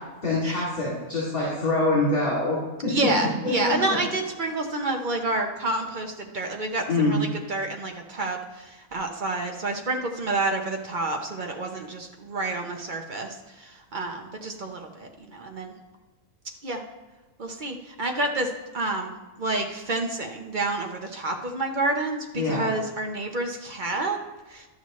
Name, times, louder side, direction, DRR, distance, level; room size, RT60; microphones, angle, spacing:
voice 1, 0.2-2.9 3.6-4.0 6.9-7.2 22.3-22.7, left 2 dB, 40° left, -8 dB, 2.8 m, -25 dB
voice 2, 2.9-15.7 16.6-16.8 17.4-24.2 24.5-24.7, right 2 dB, 45° right, 3 dB, 0.8 m, -29 dB
11.5 x 6.3 x 3.1 m, 1.2 s
omnidirectional pair, 1.5 m